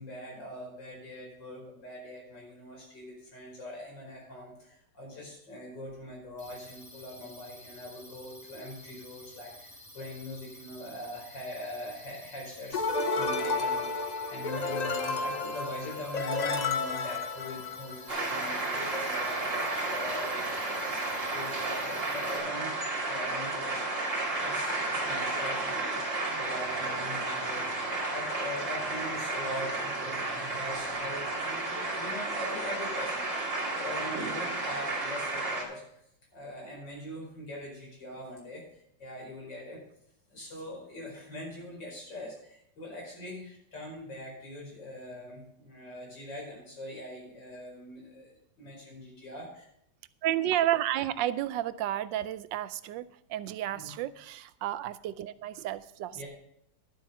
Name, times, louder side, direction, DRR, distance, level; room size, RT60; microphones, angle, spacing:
voice 1, 0.0-21.0 21.3-22.7 23.0-27.7 28.1-36.0 36.3-39.8 40.3-49.7 53.7-53.9 56.1-56.3, left 1 dB, 75° left, -3 dB, 5.5 m, -42 dB
sound 1, 6.4-22.4, left 1 dB, 10° left, 2.7 m, -51 dB
sound 2, 12.7-18.2, left 3 dB, 55° left, 0.4 m, -31 dB
sound 3, 18.1-35.6, right 2 dB, 40° right, 2.9 m, -32 dB
voice 2, 50.2-56.2, right 12 dB, 85° right, 15 dB, 1.3 m, -31 dB
11.5 x 7.8 x 5.6 m, 0.73 s
omnidirectional pair, 2.0 m